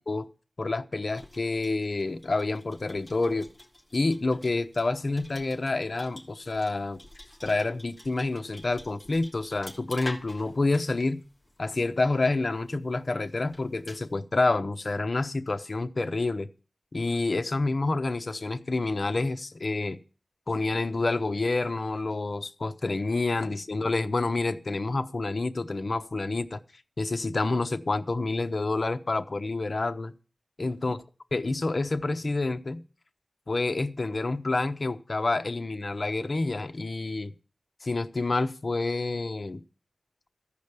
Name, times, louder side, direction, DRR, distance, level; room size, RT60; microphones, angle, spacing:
voice 1, 0.6-3.5 3.9-7.0 7.4-11.2 11.6-16.5 16.9-20.0 20.5-26.6 27.0-30.1 30.6-31.0 31.3-32.8 33.5-37.3 37.8-39.6, left 3 dB, 55° left, 0.9 m, -28 dB
sound 1, 1.1-14.1, left 1 dB, 15° left, 2.9 m, -49 dB
15.0 x 5.2 x 8.2 m
wide cardioid pair, 80°, 0 cm